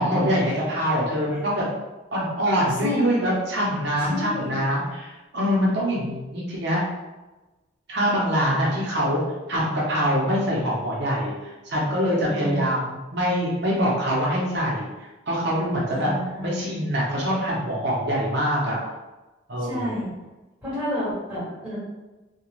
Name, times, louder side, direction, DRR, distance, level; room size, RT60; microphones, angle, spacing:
voice 1, 0.0-1.6 2.1-6.8 7.9-9.2 9.5-11.3 11.6-14.9 15.3-16.1 16.4-18.8 19.5-19.9, equal, 55° right, -5 dB, 0.6 m, -24 dB
voice 2, 3.9-4.6 12.2-12.6 15.9-16.6 19.6-20.1 20.6-21.8, left 1 dB, 5° right, -11 dB, 1.4 m, -30 dB
2.4 x 2.2 x 3.0 m, 1.1 s
head